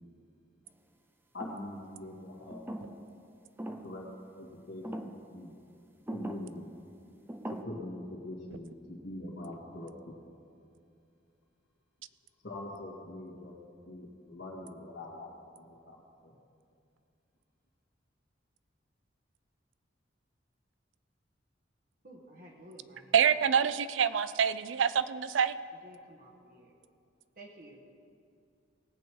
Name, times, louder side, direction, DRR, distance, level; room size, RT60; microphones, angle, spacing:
voice 1, 1.3-2.9 3.8-4.1 4.3-5.5 6.1-6.7 7.5-9.9 12.4-13.6 13.9-15.3 15.6-16.4, left 1 dB, 60° left, -9 dB, 2.2 m, -43 dB
sound 1, 1.4-1.8 2.5-3.1 3.6-4.0 4.8-5.2 6.1-6.5 7.3-7.6, right 1 dB, 10° right, 0.7 m, -40 dB
voice 2, 22.0-23.1 25.8-26.7 27.4-27.8, right 1 dB, 50° right, -1 dB, 1.6 m, -52 dB
voice 3, 23.1-25.5, right 7 dB, 80° right, 14 dB, 0.5 m, -26 dB
19.5 x 8.5 x 4.7 m, 2.5 s
head